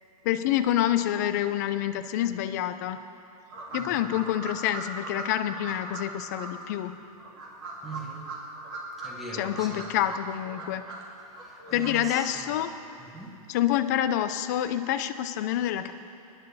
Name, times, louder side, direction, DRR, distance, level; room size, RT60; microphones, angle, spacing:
voice 1, 0.2-3.0 3.7-7.0 9.4-10.8 11.7-12.7 13.5-15.9, left 12 dB, 30° left, 10 dB, 0.5 m, -27 dB
sound 1, 3.5-6.0 6.4-6.5 7.2-9.1 9.4-11.0 11.3-12.2, right 3 dB, 35° right, 2.4 m, -39 dB
voice 2, 3.8-4.2 7.8-8.4 9.0-9.9 11.2-12.6 13.0-13.5, right 3 dB, ahead, -3 dB, 1.2 m, -42 dB
23.5 x 10.5 x 4.1 m, 2.7 s
supercardioid pair, 175°, 19 cm